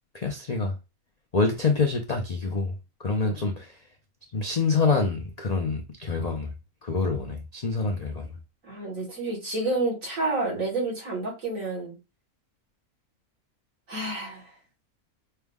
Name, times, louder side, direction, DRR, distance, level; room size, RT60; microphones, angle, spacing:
voice 1, 0.1-0.7 1.3-2.7 3.0-3.7 4.3-6.5 6.8-8.3, left 4 dB, 60° left, 0.4 m, -26 dB
voice 2, 8.6-12.0 13.9-14.5, right 2 dB, 65° right, 2.4 m, -29 dB
5.6 x 2.1 x 3.5 m
omnidirectional pair, 1.5 m